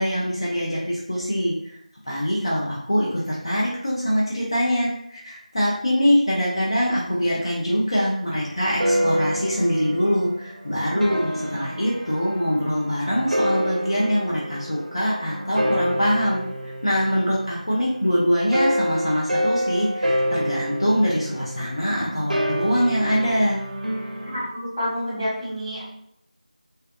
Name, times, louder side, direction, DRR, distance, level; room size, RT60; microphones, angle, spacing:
voice 1, 0.0-1.8 2.1-23.6, equal, 40° left, -5 dB, 0.4 m, -23 dB
sound 1, 8.3-18.0 18.5-24.5, equal, 85° right, 0.5 m, -28 dB
voice 2, 24.2-25.8, equal, 5° left, -18 dB, 0.8 m, -28 dB
2.5 x 2.1 x 2.3 m, 0.74 s
figure-of-eight pair, 175°, 4 cm